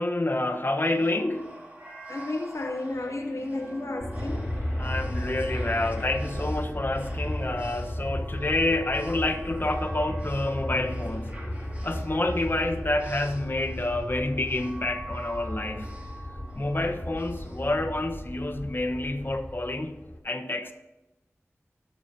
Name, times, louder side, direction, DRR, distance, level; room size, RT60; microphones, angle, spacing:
voice 1, 0.0-1.6 4.8-11.3 11.8-15.9 16.5-20.0 20.2-20.7, left 2 dB, 45° left, 1.2 m, -28 dB
sound 1, 0.8-18.5, right 1 dB, 30° right, 2.5 m, -45 dB
voice 2, 2.1-4.5, left 2 dB, 80° left, 0.9 m, -32 dB
Aircraft, 4.0-20.2, left 1 dB, 30° left, 2.5 m, -35 dB
19.0 x 6.9 x 2.9 m
wide cardioid pair, 45°, 5 cm